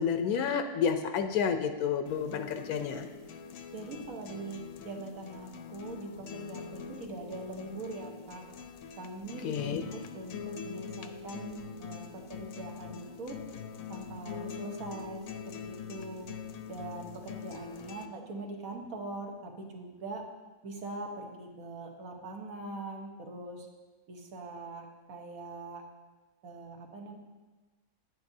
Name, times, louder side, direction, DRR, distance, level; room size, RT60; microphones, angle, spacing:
voice 1, 0.0-3.1 9.4-9.8, left 7 dB, 90° left, 7 dB, 1.1 m, -30 dB
sound 1, 2.1-18.1, left 6 dB, 75° left, 0.9 m, -44 dB
voice 2, 3.7-8.4 8.9-12.0 12.3-13.4 13.9-16.3 16.7-20.2 20.6-23.7 24.1-25.8 26.4-27.1, right 2 dB, 75° right, 2 dB, 1.5 m, -42 dB
9.3 x 9.3 x 2.7 m, 1.3 s
omnidirectional pair, 1.5 m